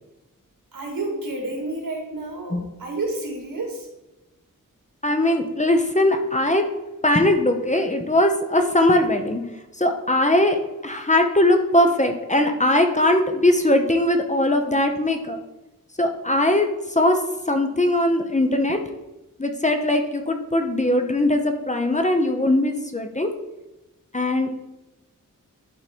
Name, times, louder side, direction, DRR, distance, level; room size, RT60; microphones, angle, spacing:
voice 1, 0.7-3.9, right 2 dB, 80° right, -1 dB, 2.7 m, -30 dB
voice 2, 5.0-6.6 7.0-9.4 9.8-15.4 16.0-17.2 17.5-18.8 19.4-23.3 24.1-24.5, left 1 dB, 20° left, 5 dB, 0.8 m, -20 dB
11.0 x 3.8 x 4.6 m, 0.99 s
wide cardioid pair, 95°, 34 cm